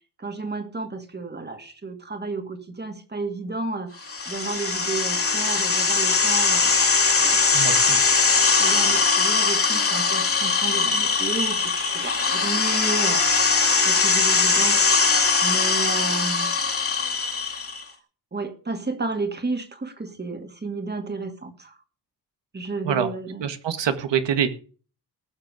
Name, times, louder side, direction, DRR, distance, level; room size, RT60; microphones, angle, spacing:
voice 1, 0.2-7.5 7.8-8.3 8.6-13.6 13.8-16.5 18.3-21.8 22.5-23.5, right 3 dB, 25° right, 7 dB, 2.2 m, -32 dB
sound 1, 4.1-17.8, left 4 dB, 30° left, 2.5 m, -21 dB
voice 2, 7.5-8.0 22.8-23.1 23.4-24.5, right 8 dB, 85° right, 9 dB, 1.8 m, -25 dB
19.0 x 6.8 x 5.0 m, 0.38 s
wide cardioid pair, 120°, 42 cm